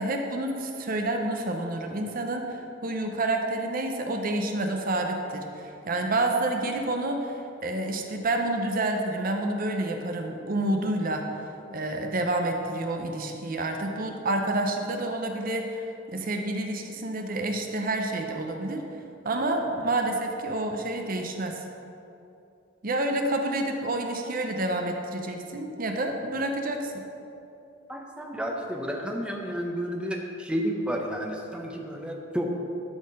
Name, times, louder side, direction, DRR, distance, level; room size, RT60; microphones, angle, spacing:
voice 1, 0.0-11.3 11.7-18.8 19.2-21.6 22.8-27.1, right 2 dB, 45° right, 3 dB, 0.7 m, -29 dB
voice 2, 27.9-32.5, equal, 5° right, 0 dB, 0.7 m, -31 dB
12.0 x 4.2 x 5.2 m, 2.8 s
head